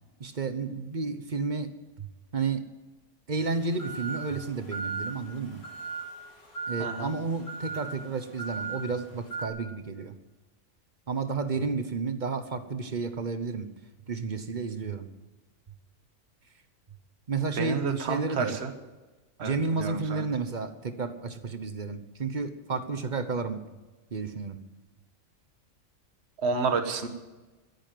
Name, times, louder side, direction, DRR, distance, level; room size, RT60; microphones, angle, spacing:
voice 1, 0.2-2.1 2.3-2.6 3.3-5.6 6.7-10.1 11.1-13.7 14.1-15.1 17.3-18.6 19.4-23.6 24.1-24.6, right 4 dB, 40° right, 10 dB, 1.0 m, -31 dB
sound 1, 3.4-9.5, right 5 dB, 50° left, 2.8 m, -38 dB
voice 2, 6.8-7.1 17.6-18.7 19.4-20.3 26.4-27.1, right 5 dB, 55° right, 7 dB, 1.5 m, -30 dB
13.5 x 10.5 x 9.3 m, 1.2 s
omnidirectional pair, 1.4 m